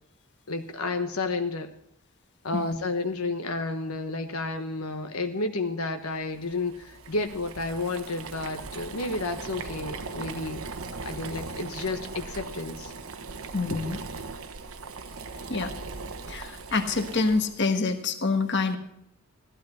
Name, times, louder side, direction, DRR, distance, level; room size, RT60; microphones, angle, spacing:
voice 1, 0.5-1.7 2.4-10.6 11.0-12.9, left 3 dB, 90° left, 6 dB, 1.2 m, -31 dB
Boiling, 6.3-17.6, right 4 dB, 75° right, 1.1 m, -39 dB
voice 2, 13.5-14.0 15.5-15.7 16.3-18.8, left 3 dB, 55° left, 7 dB, 1.3 m, -26 dB
15.5 x 12.5 x 4.3 m, 0.73 s
head